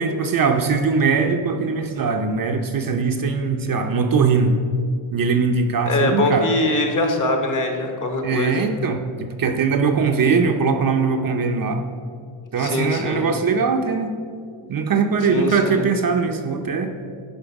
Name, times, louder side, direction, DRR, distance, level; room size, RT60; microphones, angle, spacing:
voice 1, 0.0-4.5 5.1-6.5 8.2-11.8 12.5-14.1 14.7-16.9, right 5 dB, 45° right, 5 dB, 0.6 m, -21 dB
voice 2, 5.9-8.7 12.6-13.2 15.3-15.9, left 2 dB, 40° left, 4 dB, 1.2 m, -22 dB
10.5 x 4.4 x 5.8 m, 2.2 s
wide cardioid pair, 135°, 50 cm